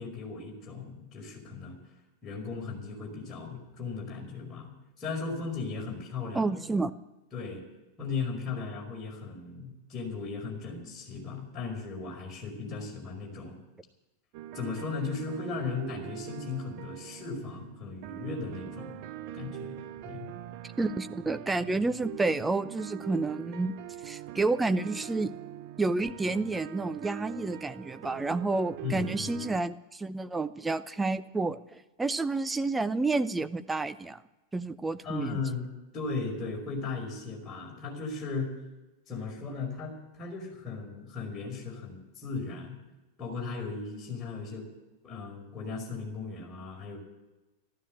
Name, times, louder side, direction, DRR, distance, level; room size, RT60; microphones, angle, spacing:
voice 1, 0.0-1.8 2.2-4.7 5.0-6.5 7.3-7.6 8.0-13.6 14.5-18.9 19.3-20.3 21.2-21.3 28.8-29.4 35.0-35.7 35.9-38.5 39.1-42.8 43.2-44.7 45.0-47.0, left 4 dB, 25° left, -2 dB, 5.3 m, -37 dB
voice 2, 6.3-6.9 20.8-23.7 24.0-25.3 25.8-34.2 34.5-35.4, right 3 dB, 10° right, 11 dB, 0.7 m, -30 dB
sound 1, 14.3-29.6, right 12 dB, 45° right, 0.7 m, -43 dB
13.5 x 13.0 x 7.8 m, 1.1 s
figure-of-eight pair, 90°, 0 cm